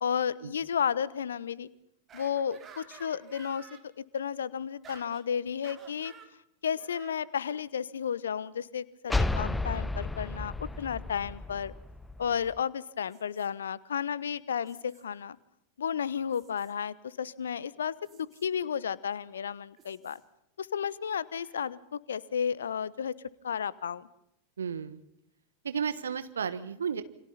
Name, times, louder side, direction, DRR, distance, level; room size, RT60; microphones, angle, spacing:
voice 1, 0.0-1.7 2.1-3.7 4.0-6.1 6.6-11.7 12.2-15.4 15.8-20.2 20.6-23.1 23.4-24.1, left 7 dB, 65° left, 20 dB, 1.0 m, -33 dB
sound 1, 2.1-3.8 4.8-5.3 5.6-6.3 6.8-7.2 9.1-9.3 11.5-11.6 13.1-13.5 14.6-15.0 16.3-16.7 18.0-18.5 19.8-20.2 21.3-21.6, right 6 dB, 25° right, 3.5 m, -53 dB
sound 2, 9.1-12.6, left 2 dB, 5° left, 0.8 m, -32 dB
voice 2, 24.6-25.0 25.6-27.0, right 7 dB, 70° right, 13 dB, 1.4 m, -33 dB
28.5 x 26.0 x 4.3 m, 0.81 s
figure-of-eight pair, 90°, 0 cm